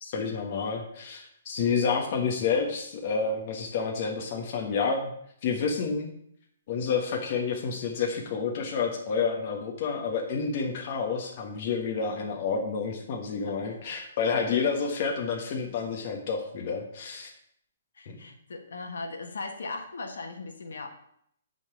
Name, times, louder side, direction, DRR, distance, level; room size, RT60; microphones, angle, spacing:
voice 1, 0.0-5.1 5.4-6.1 6.7-17.3 18.1-18.2, left 5 dB, 40° left, 2 dB, 1.4 m, -29 dB
voice 2, 18.0-20.9, left 3 dB, 80° left, 4 dB, 1.5 m, -38 dB
8.3 x 4.1 x 6.8 m, 0.69 s
hypercardioid pair, 160°, 0 cm